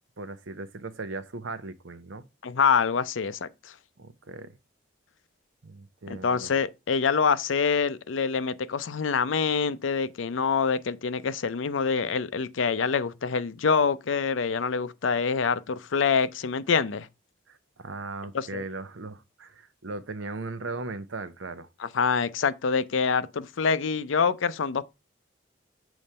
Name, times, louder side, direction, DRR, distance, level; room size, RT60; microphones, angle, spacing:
voice 1, 0.2-2.2 4.0-4.6 5.6-6.5 17.5-21.7, right 3 dB, 85° right, 0.7 m, -38 dB
voice 2, 2.4-3.7 6.1-17.1 18.3-18.6 21.8-24.8, left 5 dB, 85° left, 0.5 m, -26 dB
7.0 x 3.2 x 5.4 m
head